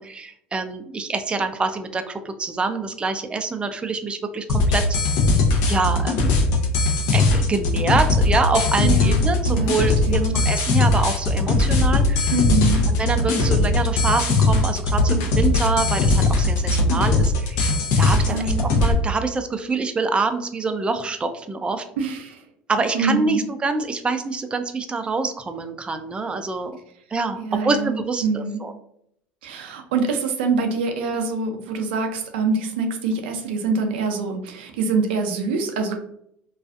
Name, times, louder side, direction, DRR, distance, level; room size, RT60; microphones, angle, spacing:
voice 1, 0.0-4.8 5.7-6.3 7.1-12.3 12.9-17.6 18.0-21.8 22.7-26.8 27.1-28.7, right 4 dB, 20° right, 7 dB, 0.3 m, -25 dB
sound 1, 4.5-18.9, left 2 dB, 70° left, 0.6 m, -20 dB
voice 2, 8.8-9.2 9.5-10.4 12.3-12.8 18.3-18.6 22.0-22.4 22.9-23.4 27.4-28.6 29.4-35.9, right 4 dB, 85° right, 4 dB, 0.4 m, -25 dB
2.4 x 2.3 x 2.4 m, 0.71 s
hypercardioid pair, 80°, 6 cm